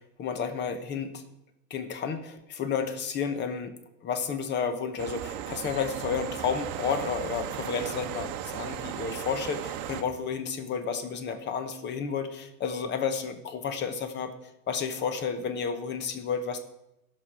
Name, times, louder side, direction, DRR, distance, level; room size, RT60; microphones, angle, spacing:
voice 1, 0.2-1.2 1.7-14.3 14.7-16.6, left 6 dB, 20° left, 9 dB, 0.9 m, -31 dB
sound 1, 5.0-10.0, right 11 dB, 45° right, 1.0 m, -36 dB
16.5 x 6.4 x 4.8 m, 0.87 s
supercardioid pair, 145°, 49 cm